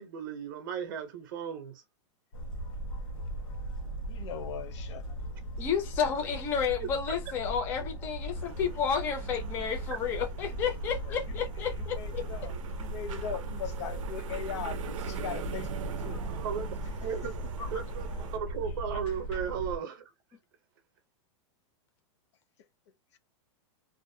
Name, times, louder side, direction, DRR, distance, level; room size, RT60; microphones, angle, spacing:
voice 1, 0.0-1.8 6.8-6.9 16.3-16.7 17.0-17.3 17.7-20.0, right 7 dB, 40° right, 0.6 m, -35 dB
sound 1, 2.3-19.8, right 1 dB, 90° left, 1.1 m, -38 dB
voice 2, 4.0-5.2 11.0-11.4 11.7-16.2 16.9-17.5 23.1-23.2, left 8 dB, 65° left, 0.5 m, -40 dB
voice 3, 5.6-12.2 17.7-17.8, left 7 dB, 15° left, 0.3 m, -31 dB
sound 2, 8.3-18.4, right 7 dB, 85° right, 0.5 m, -43 dB
2.5 x 2.1 x 2.5 m
supercardioid pair, 180°, 16 cm